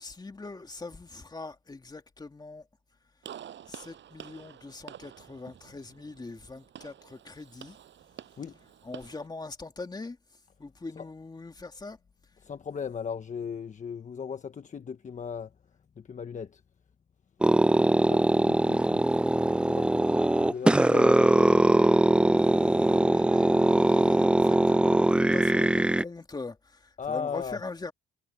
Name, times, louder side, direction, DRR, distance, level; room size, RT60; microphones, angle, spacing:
voice 1, 0.0-2.7 3.7-7.8 8.8-10.2 10.6-12.0 22.4-27.9, left 3 dB, 20° left, 2.5 m, -42 dB
Gunshot gunfire, 3.2-9.3, right 10 dB, 70° right, 7.5 m, -48 dB
voice 2, 12.4-15.5 16.0-16.6 18.1-19.0 19.3-20.1 20.4-21.5 27.0-27.6, left 6 dB, 40° left, 1.2 m, -37 dB
sound 1, 17.4-26.0, right 1 dB, 5° right, 0.4 m, -22 dB
cardioid pair, 90°, 20 cm